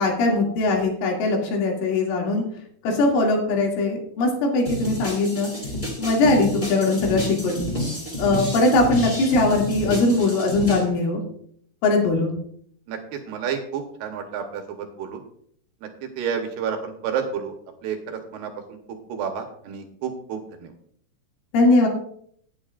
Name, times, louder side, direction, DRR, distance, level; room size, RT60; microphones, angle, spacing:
voice 1, 0.0-2.4 2.8-5.5 6.0-7.7 8.2-11.2 11.8-12.3 21.5-21.9, left 2 dB, 90° left, 0 dB, 4.9 m, -20 dB
sound 1, 4.6-10.8, left 1 dB, 15° left, 2.0 m, -30 dB
voice 2, 12.9-15.2 16.2-17.5 17.8-18.8 19.1-20.7, right 7 dB, 70° right, 4 dB, 2.8 m, -30 dB
18.5 x 9.5 x 2.5 m, 0.65 s
omnidirectional pair, 5.5 m